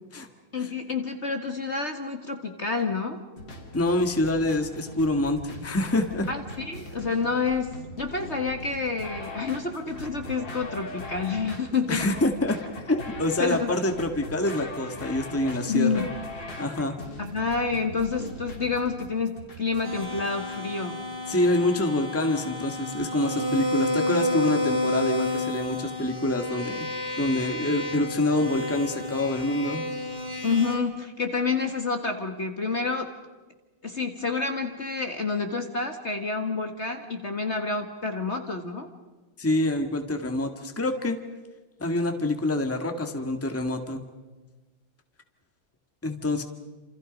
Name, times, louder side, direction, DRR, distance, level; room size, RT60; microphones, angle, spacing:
voice 1, 0.5-3.2 6.3-12.1 13.4-13.8 15.7-16.1 17.2-21.0 30.4-33.1 33.8-38.9, left 4 dB, 35° left, 4 dB, 1.8 m, -28 dB
sound 1, 3.4-20.6, left 1 dB, 70° left, 3.7 m, -40 dB
voice 2, 3.7-6.3 11.9-12.6 12.9-16.1 16.6-17.0 21.3-26.9 27.2-29.8 39.4-41.2 41.8-44.0 46.0-46.4, left 1 dB, 10° left, 5 dB, 1.6 m, -26 dB
sound 2, 19.8-30.8, left 2 dB, 55° right, 3.6 m, -30 dB
29.0 x 28.0 x 5.3 m, 1.2 s
omnidirectional pair, 2.1 m